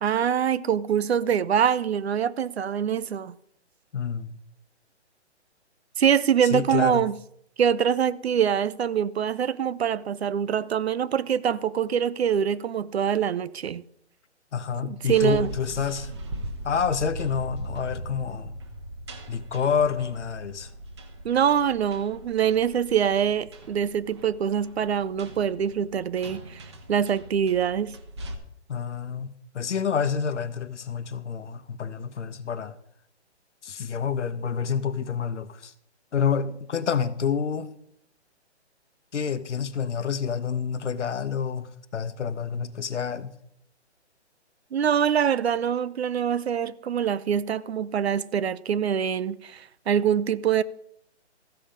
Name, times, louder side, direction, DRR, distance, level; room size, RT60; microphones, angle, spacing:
voice 1, 0.0-3.3 6.0-7.2 7.6-13.8 14.8-15.5 21.2-26.6 26.9-28.0 44.7-50.6, right 8 dB, 65° right, 0.6 m, -24 dB
voice 2, 3.9-4.4 6.5-7.1 14.5-16.1 16.6-18.6 19.3-20.7 28.7-29.3 29.5-32.7 33.6-35.7 36.1-37.7 39.1-43.3, left 7 dB, 80° left, 1.0 m, -28 dB
sound 1, 15.1-28.3, right 1 dB, 25° right, 0.8 m, -39 dB
14.5 x 5.8 x 5.1 m
hypercardioid pair, 165°, 35 cm